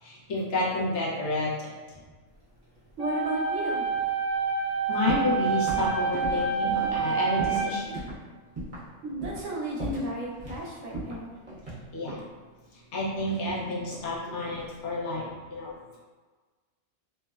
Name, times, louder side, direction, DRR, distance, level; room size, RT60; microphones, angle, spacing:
voice 1, 0.0-1.7 4.9-8.1 11.9-12.2 12.9-16.0, left 2 dB, 65° left, -6 dB, 0.9 m, -30 dB
sound 1, 3.0-8.0, right 5 dB, 5° right, 1.0 m, -28 dB
voice 2, 3.0-3.9 9.0-11.3 14.2-14.3, right 1 dB, 75° right, -3 dB, 0.9 m, -33 dB
sound 2, 5.1-5.4 5.7-7.7 7.9-8.2 8.6-8.9 9.2-9.5 9.8-10.6 10.9-12.3 13.2-14.2 14.4-14.9, right 1 dB, 30° right, 0.8 m, -37 dB
3.1 x 2.1 x 2.3 m, 1.4 s
omnidirectional pair, 1.3 m